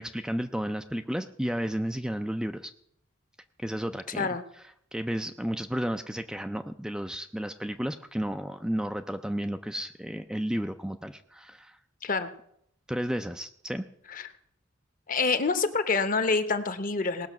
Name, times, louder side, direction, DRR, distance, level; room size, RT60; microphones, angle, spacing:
voice 1, 0.0-2.7 3.6-4.3 4.9-11.8 12.9-13.9, equal, 5° right, 7 dB, 0.4 m, -32 dB
voice 2, 15.1-17.3, left 4 dB, 40° left, 11 dB, 0.9 m, -27 dB
18.5 x 6.5 x 5.9 m, 0.70 s
head